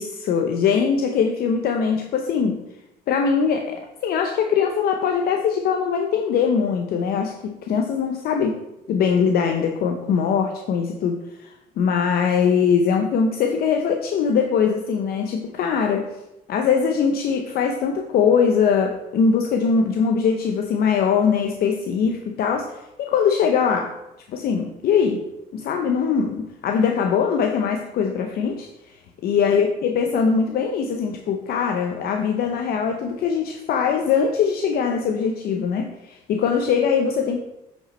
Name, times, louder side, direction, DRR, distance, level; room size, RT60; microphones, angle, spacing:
voice 1, 0.0-2.6 3.1-8.5 8.9-16.1 16.5-23.9 24.3-25.2 25.5-28.7 29.2-37.4, left 6 dB, 65° left, 4 dB, 0.7 m, -21 dB
8.4 x 5.2 x 4.2 m, 0.91 s
cardioid pair, 110°, 17 cm